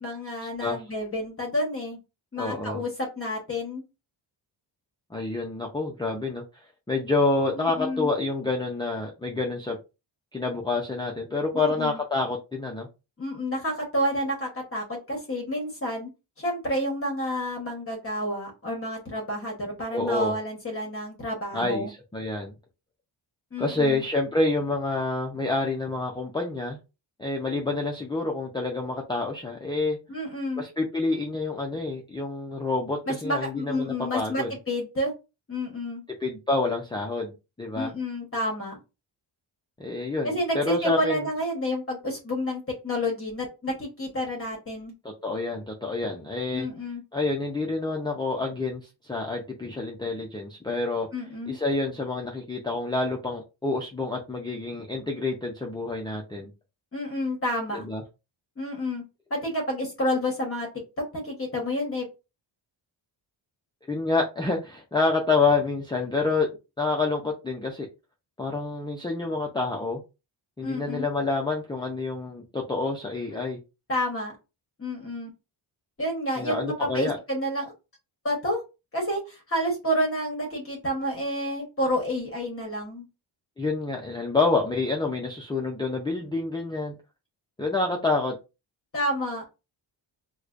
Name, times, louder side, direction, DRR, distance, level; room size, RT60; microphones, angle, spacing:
voice 1, 0.0-2.0 2.3-3.8 7.5-8.1 11.5-12.0 13.2-16.1 16.4-21.9 23.5-24.0 30.1-30.6 33.1-35.1 35.5-36.0 37.7-38.8 40.2-44.9 46.5-47.0 51.1-51.6 56.9-57.9 58.6-59.0 59.3-60.7 61.1-62.1 70.6-71.1 73.3-73.4 73.9-74.4 74.8-75.3 76.0-77.7 78.2-78.6 78.9-83.1 88.9-89.4, equal, 30° left, 0 dB, 1.1 m, -29 dB
voice 2, 2.4-2.8 5.1-6.4 6.9-9.8 10.3-12.9 19.9-20.3 21.5-22.5 23.6-26.8 27.2-30.0 30.6-34.5 36.2-37.9 39.8-41.2 45.2-46.7 47.1-51.1 51.5-56.5 57.8-58.0 63.9-66.5 66.8-67.9 68.4-70.0 70.6-73.6 76.4-77.2 83.6-86.9 87.6-88.4, left 3 dB, 10° left, 0 dB, 0.5 m, -28 dB
4.7 x 2.2 x 2.4 m, 0.28 s
wide cardioid pair, 120°, 45 cm